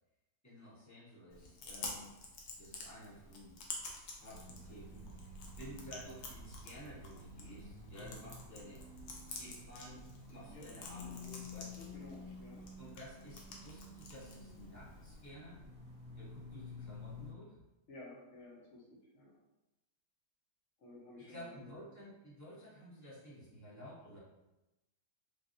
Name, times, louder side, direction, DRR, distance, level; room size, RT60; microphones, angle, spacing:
voice 1, 0.4-2.1 2.5-3.6 4.1-8.9 9.4-10.0 10.3-11.9 12.8-15.6 16.1-17.6 21.2-24.2, equal, 10° left, -9 dB, 0.9 m, -53 dB
Chewing mastication, 1.3-15.3, left 3 dB, 70° left, 1.1 m, -50 dB
sound 1, 4.3-17.3, left 2 dB, 55° right, 1.0 m, -51 dB
voice 2, 11.9-12.6 17.9-19.3 20.8-21.7, left 1 dB, 50° left, -4 dB, 1.0 m, -53 dB
3.4 x 2.5 x 2.6 m, 0.96 s
omnidirectional pair, 1.8 m